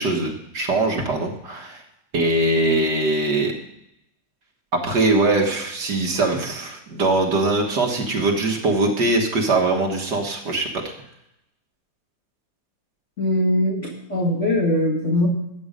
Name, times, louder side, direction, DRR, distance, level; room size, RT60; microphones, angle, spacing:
voice 1, 0.0-1.8 2.1-3.5 4.8-10.8, right 2 dB, 65° right, 1 dB, 2.0 m, -21 dB
voice 2, 13.2-15.3, left 1 dB, 40° left, -2 dB, 2.2 m, -21 dB
13.5 x 8.7 x 5.2 m, 0.83 s
omnidirectional pair, 2.0 m